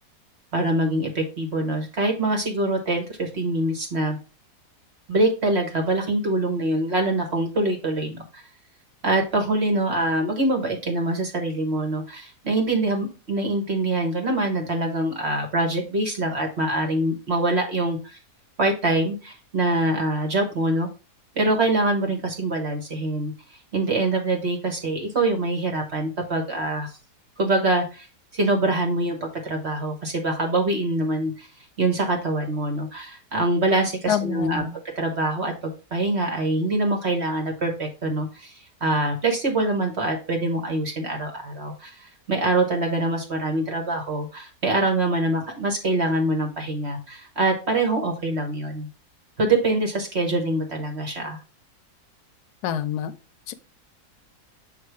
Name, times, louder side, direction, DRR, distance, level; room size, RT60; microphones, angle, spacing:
voice 1, 0.5-4.2 5.1-8.4 9.0-18.2 18.6-20.9 21.3-23.3 23.7-26.9 27.4-28.1 28.3-31.5 31.8-34.6 34.9-35.5 35.9-38.5 38.8-42.0 42.3-48.9 49.4-51.4, right 2 dB, 45° right, 1.5 m, -24 dB
voice 2, 34.1-34.8 52.6-53.1 53.5-53.6, left 9 dB, 80° left, 1.2 m, -26 dB
6.7 x 3.1 x 4.6 m
omnidirectional pair, 1.7 m